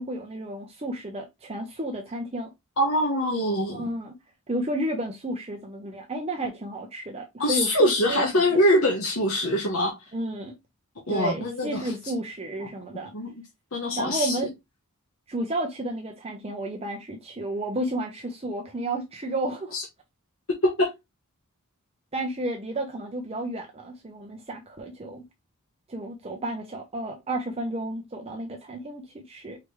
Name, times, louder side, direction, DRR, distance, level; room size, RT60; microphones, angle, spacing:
voice 1, 0.0-2.5 3.7-4.2 4.5-8.3 8.5-8.6 10.1-10.5 11.1-13.1 13.9-14.5 15.3-19.8 22.1-25.3 25.9-29.6, right 1 dB, 25° right, 0.7 m, -32 dB
voice 2, 2.8-3.9 7.4-10.0 11.1-11.9 13.1-13.3 13.7-14.4 19.7-19.8 20.6-20.9, left 1 dB, 60° left, 1.1 m, -23 dB
4.9 x 3.4 x 3.1 m
head